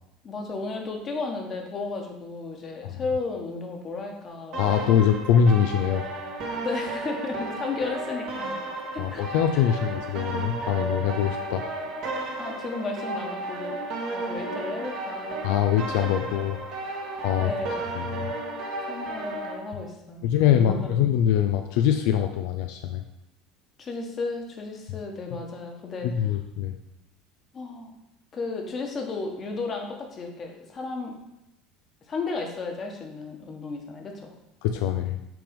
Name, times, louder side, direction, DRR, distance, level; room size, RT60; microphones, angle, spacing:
voice 1, 0.2-5.0 6.6-8.5 8.9-9.2 9.5-9.6 12.4-13.8 14.1-15.6 17.4-17.8 18.9-20.9 23.8-26.1 27.5-27.9 28.3-31.2 32.1-34.3, left 3 dB, 35° left, 2 dB, 1.2 m, -34 dB
sound 1, 4.5-19.5, right 2 dB, 60° right, 1.7 m, -33 dB
voice 2, 4.6-6.0 9.0-11.7 15.4-16.6 17.2-17.5 17.9-18.3 20.2-23.0 26.0-26.7 34.6-35.2, left 9 dB, 75° left, 6 dB, 0.4 m, -23 dB
5.9 x 3.4 x 5.2 m, 0.88 s
supercardioid pair, 110°, 0 cm